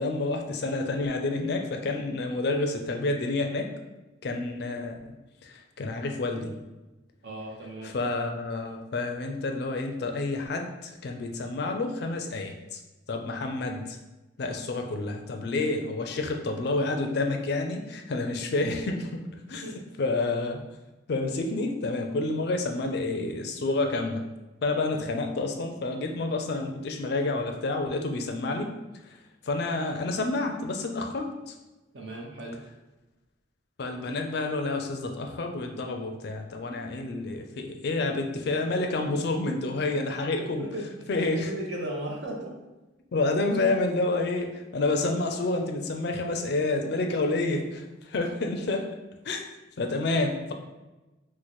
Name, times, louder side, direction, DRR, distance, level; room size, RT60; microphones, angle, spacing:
voice 1, 0.0-3.7 4.2-5.0 5.4-6.6 7.8-12.8 13.1-14.0 14.4-19.6 20.0-20.6 21.1-24.2 24.6-28.7 29.5-31.5 33.8-40.7 41.1-41.5 43.1-48.9 49.3-49.4 49.8-50.5, left 2 dB, 55° left, 4 dB, 0.4 m, -29 dB
voice 2, 7.2-7.9 19.5-19.8 24.9-25.0 31.9-32.6 39.9-40.0 40.3-42.5, right 1 dB, 60° right, 0 dB, 0.7 m, -37 dB
3.0 x 2.1 x 4.1 m, 1.1 s
head